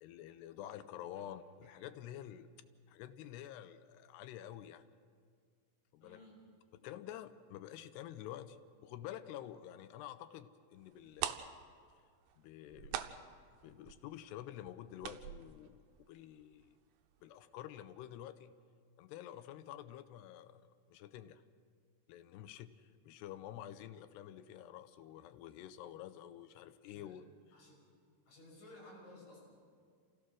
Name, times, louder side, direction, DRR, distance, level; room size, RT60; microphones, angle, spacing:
voice 1, 0.0-2.5 2.9-4.8 5.9-6.2 6.7-11.4 12.4-13.2 13.6-16.7 17.2-18.5 19.0-21.4 22.1-27.3, left 11 dB, 85° left, 12 dB, 2.8 m, -49 dB
voice 2, 6.0-6.4 26.9-27.2 27.5-27.8 28.3-29.6, left 1 dB, 55° left, -4 dB, 7.9 m, -56 dB
sound 1, 10.9-11.0 11.1-16.7 17.0-17.1 17.5-17.7 18.1-18.2, right 11 dB, 80° right, 2.6 m, -43 dB
27.5 x 16.5 x 6.3 m, 2.1 s
omnidirectional pair, 4.7 m